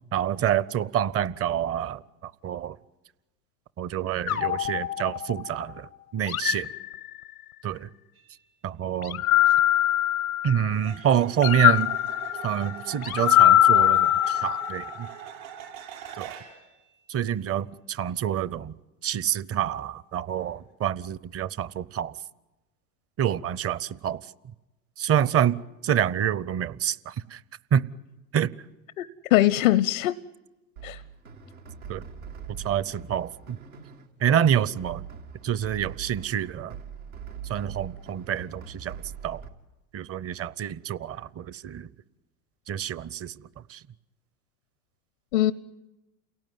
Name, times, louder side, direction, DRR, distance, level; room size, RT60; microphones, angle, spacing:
voice 1, 0.1-2.8 3.8-6.7 7.6-7.9 8.6-9.2 10.4-11.9 12.4-15.1 16.2-16.4 17.1-18.7 19.0-22.1 23.2-24.2 25.0-25.6 25.8-27.4 27.7-27.9 28.3-28.5 31.9-32.0 32.6-33.6 34.2-35.1 35.4-36.8 37.5-39.0 39.2-39.4 39.9-41.9 42.7-43.4 43.7-43.8, right 9 dB, 35° right, 0.8 m, -27 dB
sound 1, 4.3-5.6 6.3-7.5 9.0-10.8 11.4-14.9, left 13 dB, 90° left, 1.0 m, -22 dB
sound 2, 8.2-8.4 10.7-16.7 20.3-20.6, right 9 dB, 65° right, 7.2 m, -42 dB
voice 2, 29.0-30.2 30.8-31.0 45.3-45.5, left 15 dB, 75° left, 0.8 m, -22 dB
sound 3, 30.8-39.5, right 7 dB, 90° right, 2.6 m, -42 dB
29.0 x 18.0 x 9.5 m
hypercardioid pair, 80°, 42 cm